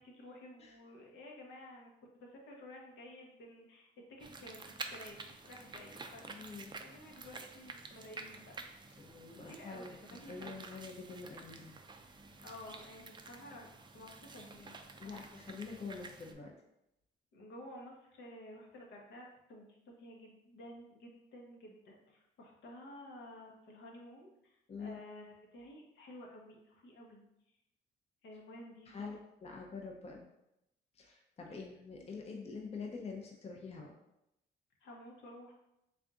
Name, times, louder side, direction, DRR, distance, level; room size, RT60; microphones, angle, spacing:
voice 1, 0.0-6.3 6.8-8.5 8.8-9.0 9.5-10.6 12.4-14.7 15.0-15.7 17.3-27.2 28.2-29.1 31.9-32.1 34.8-35.5, left 1 dB, 70° left, 0 dB, 0.9 m, -52 dB
sound 1, 4.2-16.3, right 4 dB, 25° right, 0.4 m, -50 dB
voice 2, 6.3-6.8 9.0-11.7 15.0-16.5 24.7-25.0 28.9-30.3 30.9-34.0, left 4 dB, 30° left, 1 dB, 0.6 m, -46 dB
3.4 x 2.5 x 3.7 m, 0.85 s
cardioid pair, 90°, 20 cm